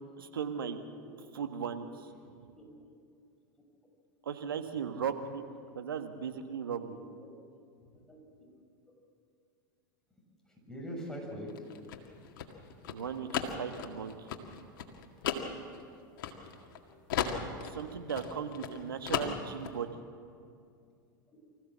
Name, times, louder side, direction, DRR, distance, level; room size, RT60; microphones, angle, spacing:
voice 1, 0.2-0.8 1.3-1.9 2.4-2.5 4.2-5.5 5.7-7.0 12.9-14.3 17.6-19.9, right 7 dB, 90° right, 7 dB, 1.6 m, -37 dB
voice 2, 2.2-2.7 6.4-7.3 7.8-8.5 10.5-11.5 11.8-12.1 15.1-15.3 16.3-16.5 16.8-17.0 17.6-17.9 21.3-21.4, equal, 5° left, -1 dB, 6.6 m, -47 dB
sound 1, 11.5-16.8 17.1-18.8 19.0-19.7, left 8 dB, 70° left, 2.0 m, -35 dB
25.5 x 15.5 x 7.5 m, 2.4 s
hypercardioid pair, 95°, 11 cm